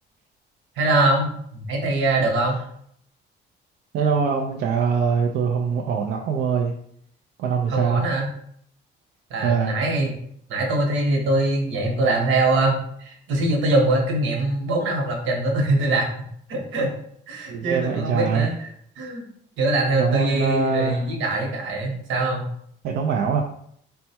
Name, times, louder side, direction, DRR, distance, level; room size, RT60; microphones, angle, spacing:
voice 1, 0.8-2.6 7.7-8.3 9.3-10.1 10.5-16.1 16.5-16.9 17.3-18.7 19.0-19.3 19.6-22.5, right 2 dB, 75° right, 0 dB, 1.2 m, -23 dB
voice 2, 3.9-6.7 7.4-8.1 9.4-9.7 17.5-18.5 20.0-21.0 22.8-23.4, right 6 dB, 60° right, 0 dB, 0.5 m, -23 dB
4.3 x 2.2 x 4.3 m, 0.67 s
cardioid pair, 145°, 20 cm